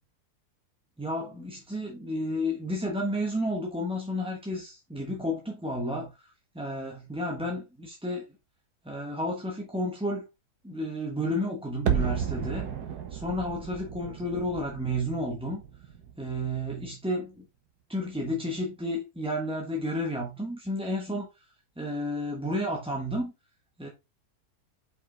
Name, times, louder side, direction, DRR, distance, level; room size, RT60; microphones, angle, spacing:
voice 1, 1.0-8.2 8.8-10.3 10.6-12.7 13.1-15.6 16.2-17.5 17.9-21.5 21.8-23.3 23.8-23.9, equal, 5° right, 0.8 m, -31 dB
sound 1, 11.9-16.8 17.1-17.2, right 8 dB, 85° right, 1.6 m, -33 dB
5.4 x 5.0 x 3.8 m
omnidirectional pair, 1.7 m